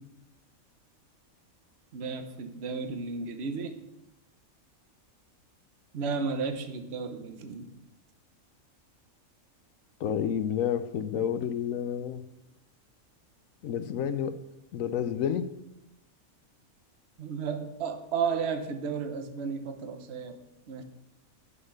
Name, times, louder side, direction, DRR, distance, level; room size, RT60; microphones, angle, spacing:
voice 1, 1.9-3.8 5.9-7.7 17.2-20.8, right 5 dB, 50° right, 8 dB, 1.1 m, -33 dB
voice 2, 10.0-12.2 13.6-14.4 14.7-15.5, left 8 dB, 75° left, 12 dB, 1.0 m, -30 dB
9.7 x 5.7 x 6.4 m, 0.89 s
omnidirectional pair, 1.5 m